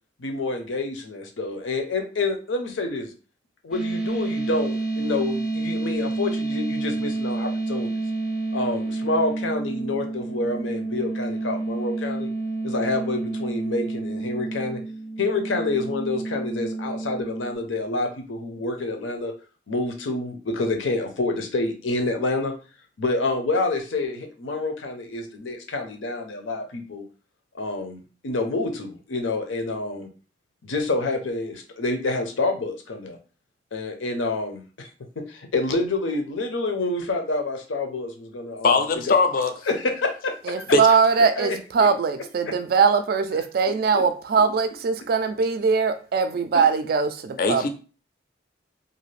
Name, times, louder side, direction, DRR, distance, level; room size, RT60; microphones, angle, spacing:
voice 1, 0.2-3.1 3.6-7.9 8.5-12.3 12.6-14.8 15.2-19.3 19.7-22.5 23.0-27.0 27.5-30.1 30.6-33.2 33.7-34.9 35.2-38.8 39.7-40.6 41.4-41.9 43.9-44.0, left 2 dB, 90° left, 0.6 m, -28 dB
sound 1, 3.7-17.5, right 2 dB, 5° right, 0.6 m, -29 dB
voice 2, 38.6-39.5 40.7-40.8 47.4-47.7, left 4 dB, 50° left, 0.4 m, -20 dB
voice 3, 40.5-47.7, right 5 dB, 50° right, 0.3 m, -21 dB
2.6 x 2.4 x 3.2 m
head